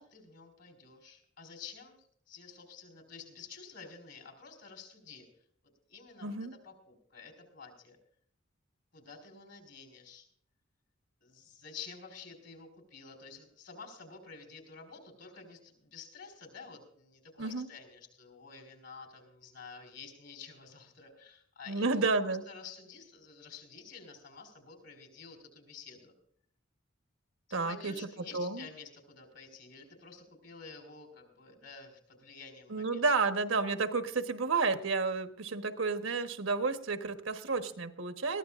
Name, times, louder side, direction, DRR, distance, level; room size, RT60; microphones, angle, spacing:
voice 1, 0.0-2.0 2.3-5.3 5.9-6.3 6.6-8.0 8.9-10.3 11.2-26.1 27.5-33.0, left 5 dB, 65° left, 5 dB, 4.3 m, -50 dB
voice 2, 6.2-6.5 17.4-17.7 21.7-22.4 27.5-27.9 28.3-28.7 32.7-38.4, right 4 dB, 85° right, 8 dB, 1.2 m, -31 dB
21.5 x 15.0 x 2.5 m, 0.62 s
head